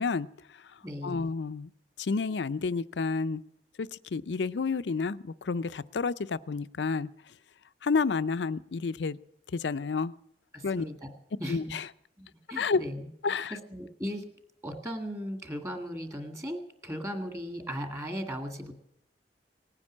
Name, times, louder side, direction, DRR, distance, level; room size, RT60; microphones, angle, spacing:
voice 1, 0.0-1.7 2.0-3.4 3.8-7.1 7.8-9.2 9.5-10.1 10.6-10.8 11.5-11.9 12.6-12.8 13.2-13.6, left 4 dB, 80° left, 14 dB, 0.5 m, -30 dB
voice 2, 0.8-1.2 10.5-11.1 11.4-11.7 12.2-14.3 14.6-18.7, equal, 15° right, 6 dB, 2.1 m, -37 dB
19.0 x 9.8 x 7.3 m, 0.77 s
head